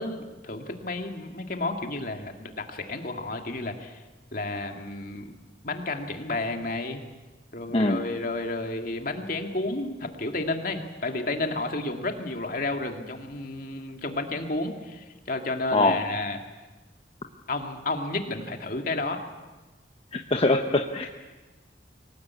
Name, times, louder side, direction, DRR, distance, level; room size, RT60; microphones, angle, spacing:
voice 1, 0.0-4.0 4.3-5.3 5.6-7.0 7.5-16.4 17.5-19.2, left 2 dB, 50° left, 4 dB, 2.3 m, -31 dB
voice 2, 7.7-8.0 15.7-16.0 20.1-21.1, left 2 dB, 35° left, 4 dB, 1.0 m, -23 dB
23.0 x 19.5 x 8.4 m, 1.2 s
head